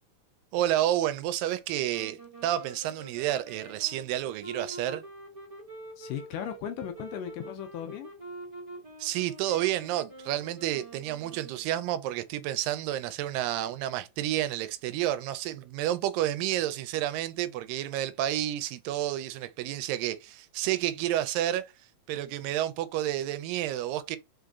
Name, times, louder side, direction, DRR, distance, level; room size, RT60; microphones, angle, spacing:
voice 1, 0.5-5.0 9.0-21.7 22.1-24.2, right 13 dB, 90° right, 2.2 m, -30 dB
sound 1, 1.9-11.9, right 2 dB, 15° right, 1.1 m, -46 dB
voice 2, 6.0-8.1, left 10 dB, 80° left, 2.1 m, -37 dB
5.0 x 3.8 x 2.3 m
omnidirectional pair, 3.9 m